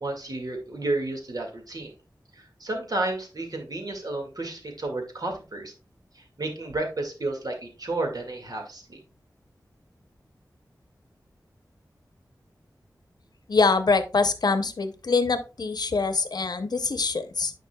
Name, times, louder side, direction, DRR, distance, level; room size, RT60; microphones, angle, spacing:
voice 1, 0.0-1.9 2.3-5.7 6.2-9.0, right 2 dB, 60° right, 2 dB, 2.0 m, -32 dB
voice 2, 13.5-17.5, left 4 dB, 70° left, 10 dB, 0.7 m, -24 dB
9.6 x 5.3 x 2.3 m, 0.32 s
wide cardioid pair, 60°, 7 cm